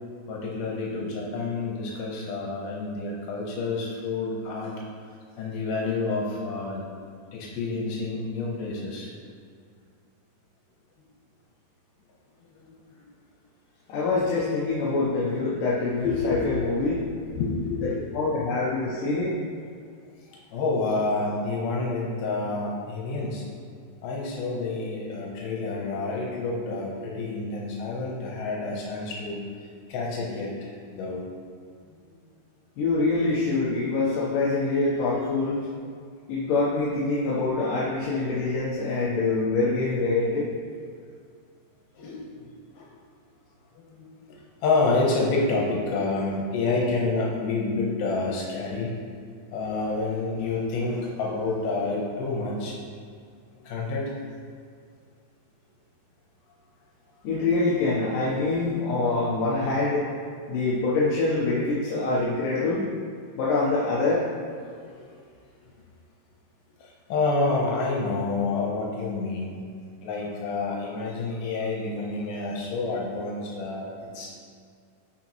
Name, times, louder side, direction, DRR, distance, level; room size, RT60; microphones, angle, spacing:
voice 1, 0.3-4.7 5.4-6.8 7.3-9.1 12.6-13.0 16.0-17.8 20.5-23.4 24.0-29.4 29.9-31.2 31.9-32.0 42.0-42.5 42.8-42.9 43.7-44.1 44.6-48.9 49.5-52.8 53.6-54.1 58.4-58.5 64.9-65.1 66.8-69.6 70.0-74.3, left 3 dB, 90° left, -3 dB, 2.9 m, -28 dB
voice 2, 13.9-16.9 17.8-19.3 32.8-35.6 36.3-40.5 57.2-60.1 60.5-62.8 63.4-64.3, left 3 dB, 70° left, -7 dB, 2.5 m, -25 dB
13.5 x 5.2 x 3.1 m, 2.2 s
omnidirectional pair, 4.3 m